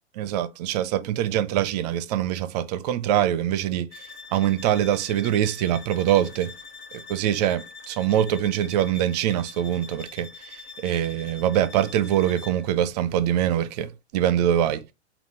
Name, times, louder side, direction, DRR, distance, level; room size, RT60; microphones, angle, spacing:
voice 1, 0.2-6.5 6.9-14.8, right 11 dB, 40° right, 0.5 m, -24 dB
sound 1, 3.9-12.7, left 4 dB, 70° left, 1.4 m, -44 dB
3.6 x 2.4 x 4.4 m
hypercardioid pair, 120°, 34 cm